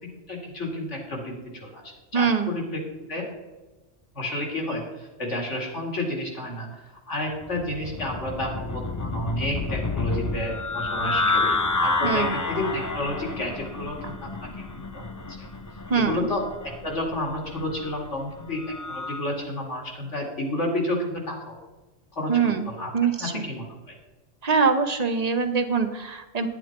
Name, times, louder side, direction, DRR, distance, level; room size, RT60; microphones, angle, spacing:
voice 1, 0.0-2.8 3.1-3.3 4.1-14.5 14.8-15.0 15.3-15.5 15.9-21.6 22.1-22.9 23.2-24.0, left 1 dB, 75° left, 0 dB, 2.6 m, -31 dB
voice 2, 2.1-2.6 11.3-11.4 12.0-12.3 14.0-14.1 15.9-16.3 22.3-22.7 22.9-23.5 24.4-26.5, right 5 dB, 35° right, 7 dB, 0.9 m, -23 dB
sound 1, 7.4-19.3, left 3 dB, 30° left, 0.4 m, -29 dB
9.9 x 9.5 x 4.4 m, 1.2 s
omnidirectional pair, 1.2 m